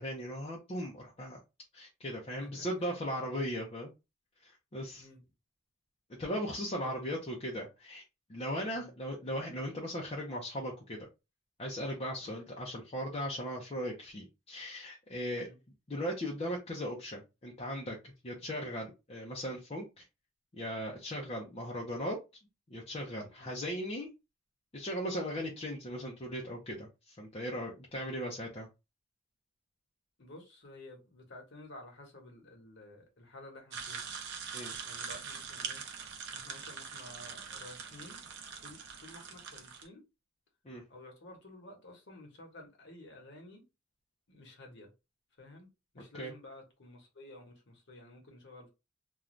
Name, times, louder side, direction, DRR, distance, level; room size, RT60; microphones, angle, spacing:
voice 1, 0.0-1.4 1.7-3.9 4.4-5.1 6.1-8.0 8.3-11.1 11.6-15.5 15.9-20.0 20.5-22.2 22.7-24.1 24.7-28.7 34.5-34.7 40.6-40.8 46.2-46.3, equal, 30° left, 0.6 m, -38 dB
voice 2, 2.4-3.0 3.3-3.6 5.0-5.2 6.8-7.2 8.7-8.9 12.2-12.4 15.4-15.6 18.4-18.5 23.4-23.6 30.2-34.1 34.8-35.8 36.3-38.2 38.6-40.0 40.9-43.6 44.3-44.9 45.4-45.7 45.9-48.7, left 1 dB, 65° left, 1.1 m, -52 dB
sound 1, 33.7-39.9, right 6 dB, 60° right, 0.6 m, -43 dB
2.5 x 2.3 x 3.1 m
head